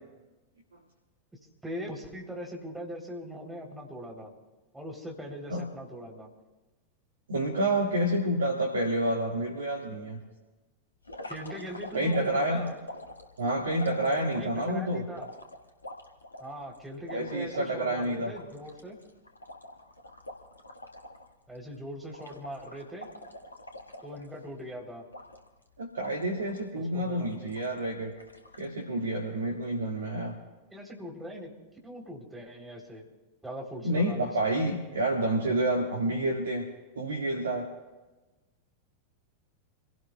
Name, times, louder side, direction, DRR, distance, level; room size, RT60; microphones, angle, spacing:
voice 1, 1.6-4.3 4.7-6.3 11.3-12.8 14.3-15.3 16.4-19.0 21.5-23.1 24.0-25.1 26.8-27.5 30.7-31.5 31.8-33.0 33.4-34.5, equal, 5° right, 0 dB, 3.5 m, -41 dB
voice 2, 7.3-10.2 11.9-12.6 13.4-15.0 17.1-18.3 25.8-28.1 28.6-30.3 33.8-36.7 37.0-37.7, right 1 dB, 70° right, -1 dB, 1.9 m, -29 dB
sound 1, 11.0-14.6 15.2-17.7 18.0-18.1 18.3-21.3 21.5-21.8 22.1-24.6 25.1-25.6 26.0-26.7 27.2-27.8 28.2-28.7, left 1 dB, 80° left, 1.8 m, -45 dB
28.5 x 17.5 x 2.3 m, 1.1 s
figure-of-eight pair, 90°, 0 cm